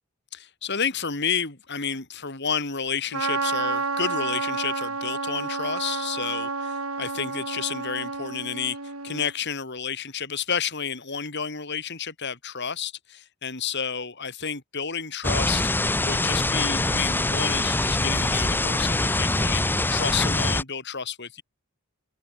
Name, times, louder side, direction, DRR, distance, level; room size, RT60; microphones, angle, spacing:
voice 1, 0.3-8.8 9.0-19.6 19.9-21.4, left 6 dB, 50° left, 3.5 m, -31 dB
Trumpet, 3.1-9.3, right 4 dB, 80° right, 3.9 m, -30 dB
sound 1, 15.2-20.6, left 2 dB, 10° left, 0.7 m, -24 dB
head